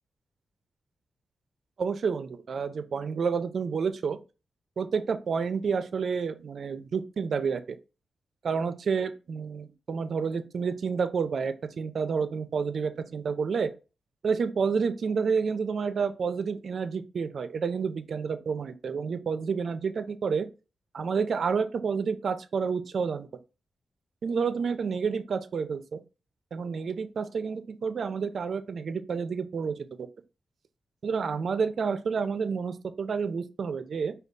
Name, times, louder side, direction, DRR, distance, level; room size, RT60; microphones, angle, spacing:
voice 1, 1.8-4.2 4.8-7.6 8.4-13.7 14.2-20.5 20.9-23.3 24.2-26.0 26.5-30.1 31.0-34.1, right 5 dB, 60° right, 0.4 m, -29 dB
5.1 x 2.3 x 3.3 m
wide cardioid pair, 110°, 0 cm